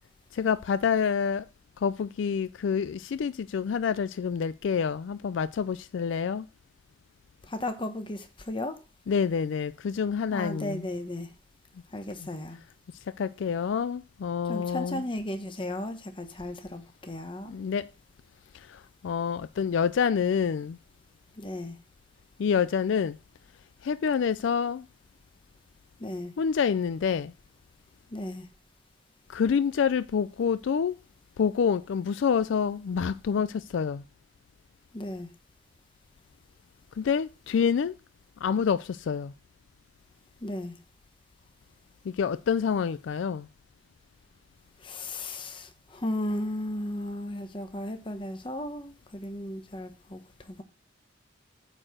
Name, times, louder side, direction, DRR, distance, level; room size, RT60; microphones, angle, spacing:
voice 1, 0.3-1.5 1.8-6.5 9.1-10.9 12.2-12.3 13.2-15.0 17.5-17.9 18.7-20.8 22.4-23.2 23.8-24.9 26.4-27.3 29.3-31.0 31.4-34.0 37.0-38.0 38.4-39.3 42.1-43.5, left 6 dB, 70° left, 0.3 m, -27 dB
voice 2, 7.5-8.8 10.3-11.3 11.9-12.6 14.5-17.6 21.4-21.8 26.0-26.3 28.1-28.5 34.9-35.3 40.4-40.8 44.8-50.6, left 1 dB, 25° left, 0.9 m, -35 dB
8.7 x 4.5 x 6.3 m
head